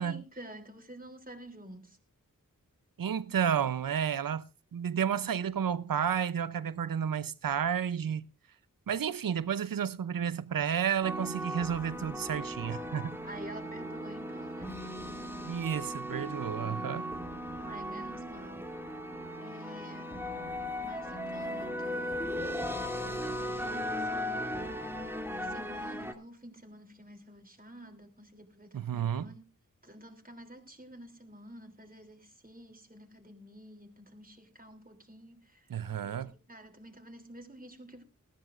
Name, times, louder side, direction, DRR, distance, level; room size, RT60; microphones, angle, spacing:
voice 1, 0.0-2.0 13.3-14.8 17.6-18.7 19.4-20.2 20.8-22.4 23.0-29.4 29.8-35.7 36.0-38.0, right 1 dB, 25° right, 3.2 m, -50 dB
voice 2, 3.0-4.4 4.7-8.2 8.9-13.2 15.4-17.1 28.7-29.3 35.7-36.3, right 8 dB, 80° right, 0.7 m, -31 dB
sound 1, 11.0-26.1, equal, 5° right, 2.1 m, -37 dB
20.0 x 14.0 x 2.5 m
cardioid pair, 45°, 33 cm